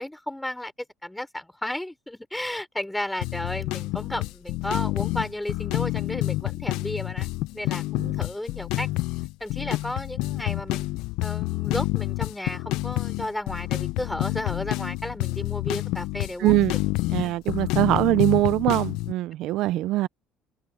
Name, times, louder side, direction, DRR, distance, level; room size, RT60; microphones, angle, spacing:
voice 1, 0.0-8.9 9.4-10.9 11.2-16.8 17.2-17.3, left 1 dB, 5° left, 5.0 m, -33 dB
sound 1, 3.2-19.1, left 19 dB, 75° left, 0.4 m, -28 dB
voice 2, 16.4-16.7 17.1-20.1, right 17 dB, 60° right, 0.4 m, -22 dB
cardioid pair, 170°, 0 cm